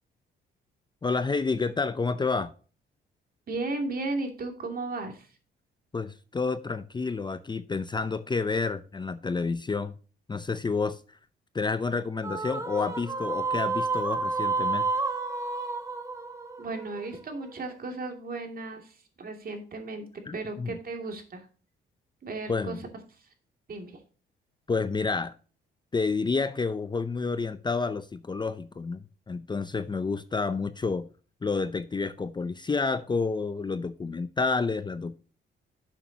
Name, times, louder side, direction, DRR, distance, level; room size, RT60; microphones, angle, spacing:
voice 1, 1.0-2.5 5.9-9.9 10.3-11.2 11.5-14.9 20.3-20.8 22.5-22.8 24.7-25.3 25.9-29.0 29.3-31.1 31.4-35.2, left 4 dB, 20° left, 0.6 m, -29 dB
voice 2, 3.5-5.3 16.6-20.1 20.3-21.4 22.2-22.8 23.7-24.0, right 3 dB, 45° right, 2.6 m, -35 dB
sound 1, 12.2-17.7, right 3 dB, 15° right, 1.6 m, -30 dB
11.5 x 7.2 x 2.8 m
cardioid pair, 90°, 20 cm